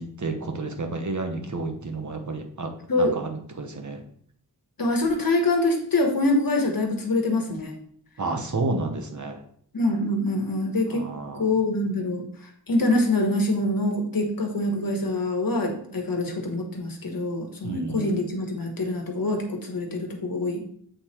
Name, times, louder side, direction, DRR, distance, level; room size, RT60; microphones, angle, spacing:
voice 1, 0.0-2.7 2.9-4.0 8.2-9.4 10.9-11.5 17.6-18.2, right 3 dB, 45° right, 5 dB, 1.1 m, -31 dB
voice 2, 4.8-7.7 9.7-11.1 11.3-12.3 12.7-20.6, left 2 dB, 55° left, 3 dB, 1.4 m, -25 dB
7.9 x 3.2 x 4.3 m, 0.62 s
wide cardioid pair, 70°, 40 cm